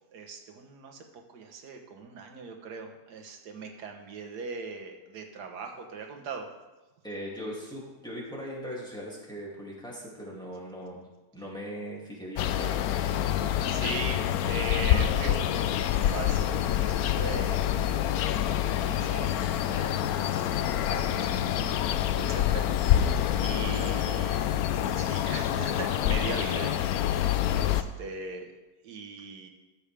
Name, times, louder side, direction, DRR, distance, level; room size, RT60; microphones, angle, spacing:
voice 1, 0.1-6.5 13.4-15.4 15.8-18.0 18.6-24.4 25.0-28.5 28.8-29.5, right 4 dB, 80° right, 4 dB, 1.7 m, -40 dB
voice 2, 7.0-11.1 11.3-12.8 23.0-23.2, equal, 5° left, -5 dB, 2.5 m, -39 dB
sound 1, 12.4-27.8, left 11 dB, 75° left, 1.0 m, -27 dB
13.5 x 8.0 x 3.4 m, 1.1 s
omnidirectional pair, 1.7 m